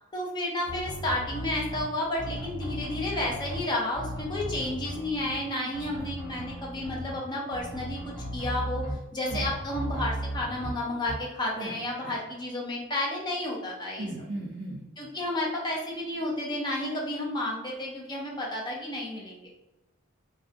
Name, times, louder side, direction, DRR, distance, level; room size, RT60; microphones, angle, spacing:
voice 1, 0.1-8.8 9.1-14.1 15.0-19.5, left 1 dB, 20° left, -3 dB, 0.5 m, -31 dB
sound 1, 0.6-1.8 2.2-3.6 3.9-5.4 5.7-7.2 7.5-8.9 9.3-10.7 11.0-11.2, right 1 dB, ahead, 1.4 m, -36 dB
voice 2, 5.6-6.1 9.2-9.4 11.6-11.7 12.0-12.2 14.0-14.8 16.8-17.0, right 1 dB, 40° right, -3 dB, 0.3 m, -37 dB
2.5 x 2.2 x 2.5 m, 0.97 s
head